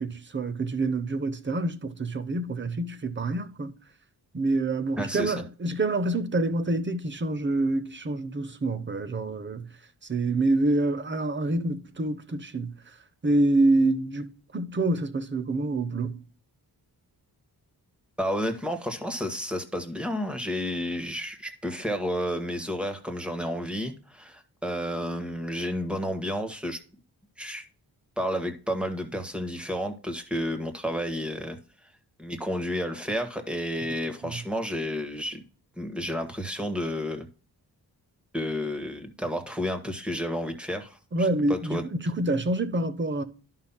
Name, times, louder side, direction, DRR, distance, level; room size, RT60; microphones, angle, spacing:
voice 1, 0.0-3.7 4.3-9.7 10.1-12.7 13.2-16.2 33.9-34.3 41.1-41.8 42.2-43.2, right 2 dB, 30° right, 0.8 m, -27 dB
voice 2, 5.0-5.3 18.2-26.8 27.4-27.6 28.2-31.6 32.2-35.4 35.8-37.3 38.3-41.8, equal, 5° right, 1.4 m, -31 dB
13.5 x 5.6 x 2.2 m
wide cardioid pair, 150°, 39 cm